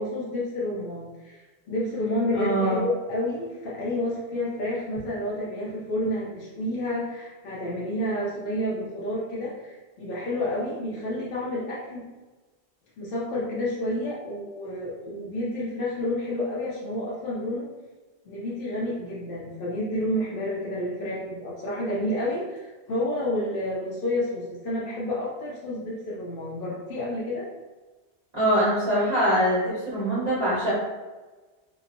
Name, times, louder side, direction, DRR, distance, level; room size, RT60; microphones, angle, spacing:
voice 1, 0.0-1.4 1.7-12.1 13.0-17.7 18.3-27.5, left 1 dB, 60° left, -6 dB, 0.7 m, -30 dB
voice 2, 2.3-2.8 28.3-30.7, equal, 40° right, -10 dB, 1.1 m, -23 dB
2.9 x 2.0 x 2.5 m, 1.2 s
omnidirectional pair, 1.2 m